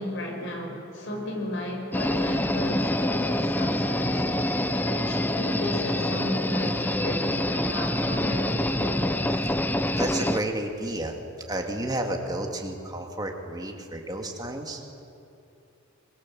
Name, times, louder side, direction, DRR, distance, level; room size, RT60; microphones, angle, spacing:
voice 1, 0.0-4.3 4.7-9.2, left 1 dB, 60° left, 1 dB, 5.2 m, -33 dB
sound 1, 1.9-10.4, left 1 dB, 10° left, 0.7 m, -26 dB
voice 2, 9.9-11.2 11.5-14.8, right 1 dB, 20° right, 2 dB, 2.5 m, -31 dB
26.0 x 22.0 x 7.8 m, 2.8 s
head